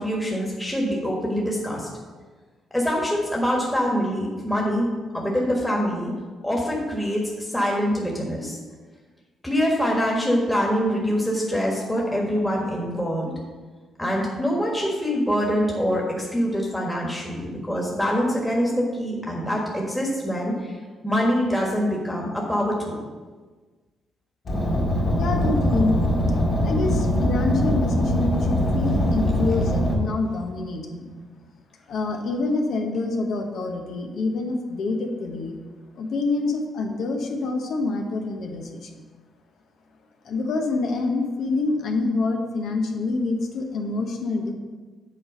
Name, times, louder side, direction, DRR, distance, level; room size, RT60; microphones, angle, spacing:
voice 1, 0.0-1.9 2.7-4.9 5.1-6.1 6.4-8.6 9.4-13.3 14.0-20.8 21.0-23.0, equal, 5° left, -2 dB, 1.5 m, -24 dB
Car, 24.5-29.9, equal, 50° left, 2.0 m, -22 dB
voice 2, 25.2-26.0 26.6-31.1 31.9-35.6 36.0-38.9 40.2-44.5, left 3 dB, 70° left, 3 dB, 1.0 m, -26 dB
7.6 x 4.2 x 6.4 m, 1.4 s
cardioid pair, 90°, 0 cm